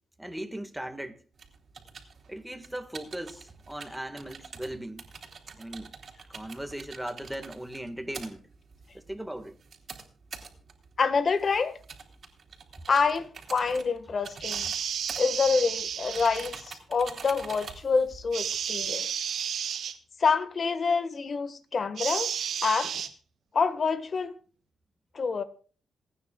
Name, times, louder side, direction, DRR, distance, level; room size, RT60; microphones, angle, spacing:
voice 1, 0.2-1.2 2.3-5.0 5.6-5.9 6.3-8.4 8.9-9.6, right 1 dB, 5° right, 1.6 m, -38 dB
sound 1, 1.4-18.9, right 5 dB, 50° right, 3.1 m, -47 dB
voice 2, 11.0-11.8 12.9-14.7 15.2-19.1 20.2-22.3 22.6-23.1 23.5-24.3 25.1-25.4, left 5 dB, 45° left, 1.5 m, -27 dB
sound 2, 14.4-16.6 18.3-20.0 22.0-23.1, right 8 dB, 75° right, 1.4 m, -32 dB
28.0 x 9.6 x 2.3 m
cardioid pair, 110°, 0 cm